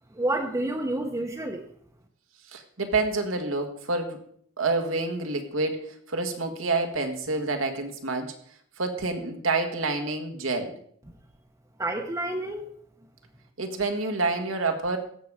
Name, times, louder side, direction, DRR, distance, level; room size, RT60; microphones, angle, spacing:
voice 1, 0.1-1.7 11.8-12.7, right 1 dB, 15° right, 1 dB, 0.8 m, -29 dB
voice 2, 2.5-4.2 4.6-8.3 8.8-10.8 13.6-15.0, right 3 dB, 90° right, 5 dB, 1.7 m, -28 dB
16.0 x 6.8 x 4.9 m, 0.64 s
head